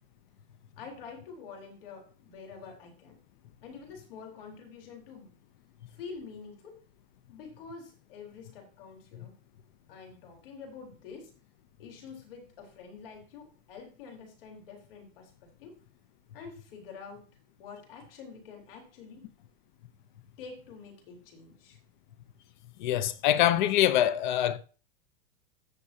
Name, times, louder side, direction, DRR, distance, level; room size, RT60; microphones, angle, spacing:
voice 1, 0.8-3.2 3.6-5.4 5.9-6.8 7.3-9.3 9.9-11.3 11.8-15.8 16.3-17.3 17.6-19.3 20.4-21.8, left 5 dB, 70° left, 4.0 m, -47 dB
voice 2, 22.8-24.6, left 12 dB, 55° left, 0.8 m, -24 dB
14.5 x 7.0 x 2.8 m
supercardioid pair, 165°, 29 cm